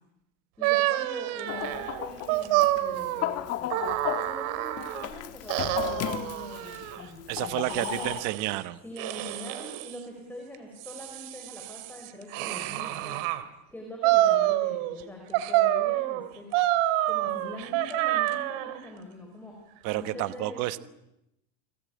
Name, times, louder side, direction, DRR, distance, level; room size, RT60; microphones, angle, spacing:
voice 1, 0.6-8.2 8.8-13.2 13.7-16.5 17.0-19.6 19.9-20.8, left 1 dB, 5° left, 1 dB, 5.1 m, -43 dB
sound 1, 0.6-5.1 5.5-7.0 7.6-8.6 9.0-10.0 10.5-13.4 14.0-15.0 15.3-18.8, right 15 dB, 65° right, 2.6 m, -28 dB
Chicken rooster, 1.5-8.2, left 13 dB, 35° left, 1.4 m, -35 dB
voice 2, 7.3-8.8 19.8-20.8, right 17 dB, 45° right, 13 dB, 1.2 m, -30 dB
30.0 x 21.0 x 8.7 m, 0.86 s
cardioid pair, 170°, 42 cm